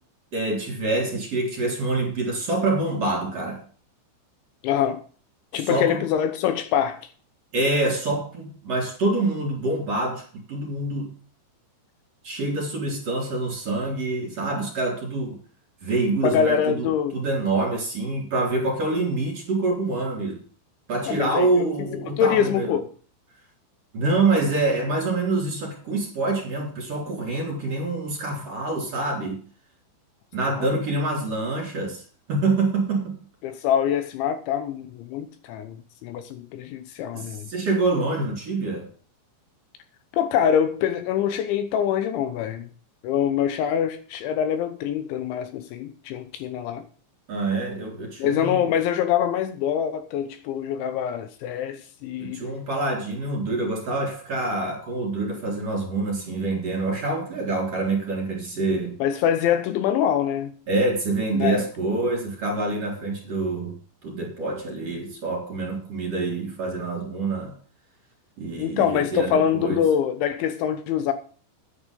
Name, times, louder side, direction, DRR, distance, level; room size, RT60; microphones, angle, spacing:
voice 1, 0.3-3.6 5.5-6.0 7.5-11.1 12.2-15.4 15.8-20.4 20.9-22.8 23.9-29.4 30.3-32.0 32.3-33.2 37.1-38.9 47.3-48.6 52.2-58.9 60.7-63.8 64.0-67.5 68.4-69.8, right 2 dB, 35° right, 4.3 m, -26 dB
voice 2, 4.6-5.0 5.5-7.0 16.2-17.2 21.1-21.7 22.2-22.9 30.6-30.7 33.4-35.8 36.0-37.5 40.1-42.7 43.0-46.8 48.2-52.4 59.0-60.5 61.3-61.7 68.6-71.1, left 9 dB, 75° left, 3.1 m, -24 dB
10.0 x 9.5 x 5.3 m
omnidirectional pair, 5.6 m